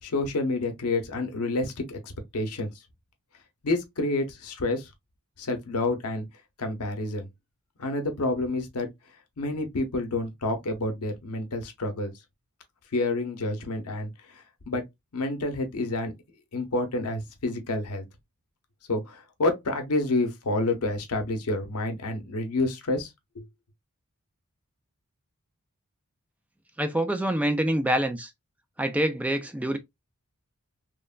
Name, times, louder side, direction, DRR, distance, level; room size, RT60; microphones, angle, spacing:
voice 1, 0.0-2.7 3.6-4.9 5.4-6.3 6.6-7.3 7.8-8.9 9.4-12.1 12.9-14.8 15.1-16.1 16.5-18.0 18.9-23.1 23.3-23.4, left 2 dB, 80° left, 0.7 m, -29 dB
voice 2, 26.8-28.3 28.8-29.8, right 1 dB, 5° right, 0.3 m, -26 dB
3.1 x 2.1 x 2.3 m
head